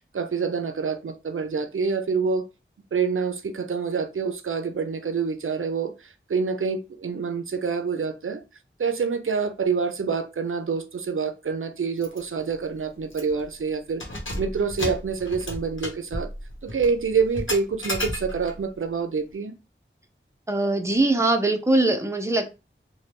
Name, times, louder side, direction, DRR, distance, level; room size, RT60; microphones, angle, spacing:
voice 1, 0.1-2.4 2.9-8.4 8.8-14.0 14.4-16.3 16.6-19.6, right 5 dB, 85° right, 0.5 m, -27 dB
Keys jangling, 12.0-12.2 12.5-12.6 13.1-13.5 13.9-18.6, left 1 dB, 70° left, 1.0 m, -33 dB
voice 2, 20.5-22.5, right 2 dB, 15° right, 0.6 m, -22 dB
3.2 x 2.2 x 2.9 m
wide cardioid pair, 50°, 21 cm